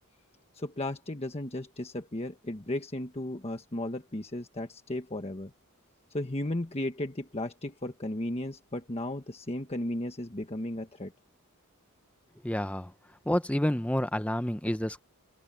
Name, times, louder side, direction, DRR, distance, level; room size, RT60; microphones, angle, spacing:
voice 1, 0.5-5.5 6.1-11.1, left 1 dB, 30° left, 1.3 m, -35 dB
voice 2, 12.4-12.9 13.3-15.0, left 1 dB, 5° left, 0.9 m, -29 dB
open air
head